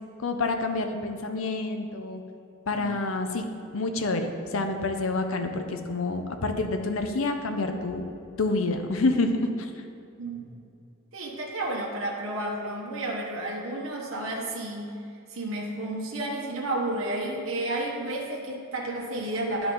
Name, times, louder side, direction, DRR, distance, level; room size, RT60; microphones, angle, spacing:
voice 1, 0.2-2.2 2.7-3.5 3.7-8.0 8.4-9.7, left 3 dB, 75° left, 6 dB, 0.7 m, -28 dB
voice 2, 10.2-10.5 11.1-15.0 15.3-19.7, right 1 dB, 75° right, -2 dB, 1.1 m, -31 dB
11.0 x 4.7 x 3.8 m, 2.6 s
head